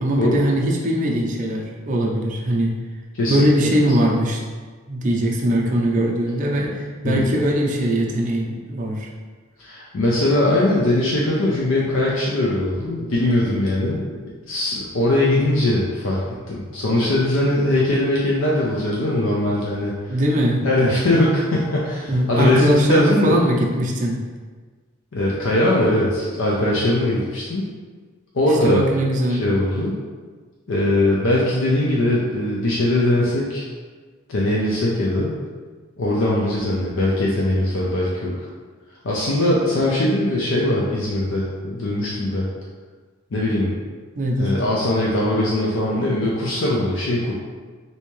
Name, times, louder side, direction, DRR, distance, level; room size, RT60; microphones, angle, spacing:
voice 1, 0.0-2.7 3.3-4.4 4.9-9.1 20.1-20.6 22.1-24.2 28.5-29.6 44.2-44.5, equal, 40° right, -1 dB, 0.5 m, -21 dB
voice 2, 3.1-3.5 6.6-6.8 7.0-7.3 9.6-14.0 14.5-19.9 20.6-23.4 25.1-27.6 28.3-28.8 29.3-29.9 30.7-33.6 34.3-35.3 36.0-38.3 39.0-42.5 43.3-43.7 44.4-47.3, left 1 dB, 70° left, -5 dB, 0.5 m, -21 dB
3.3 x 2.8 x 3.1 m, 1.4 s
head